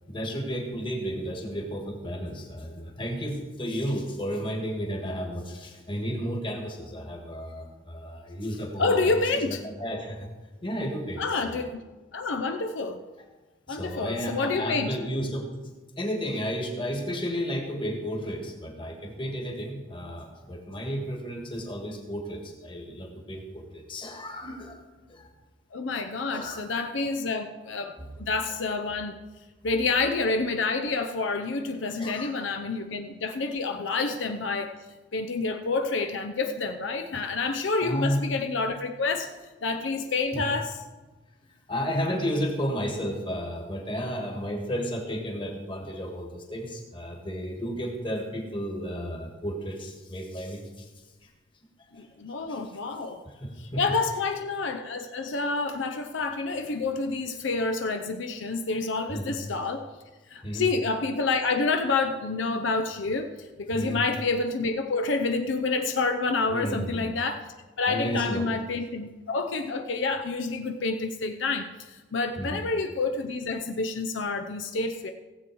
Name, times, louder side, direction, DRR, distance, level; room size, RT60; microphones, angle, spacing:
voice 1, 0.1-10.3 10.6-11.7 13.7-15.4 16.0-24.8 25.1-25.3 25.9-26.0 26.3-26.7 28.0-28.3 32.0-32.3 32.6-32.7 33.9-34.1 37.1-37.2 37.8-38.2 39.7-39.8 40.3-40.4 41.7-50.9 51.2-51.3 51.9-52.1 52.5-52.8 53.3-53.8 55.6-55.7 59.1-59.3 60.4-60.7 63.7-64.0 66.5-67.1 67.9-68.5 72.4-72.6, equal, 25° left, 2 dB, 1.7 m, -33 dB
voice 2, 8.8-9.6 11.2-11.8 12.1-13.0 13.7-14.9 25.7-29.2 29.6-34.7 35.1-39.3 39.6-40.8 51.9-53.2 53.6-59.9 60.3-67.4 67.8-75.1, left 3 dB, 75° left, 6 dB, 0.7 m, -28 dB
16.0 x 7.7 x 4.6 m, 1.2 s
head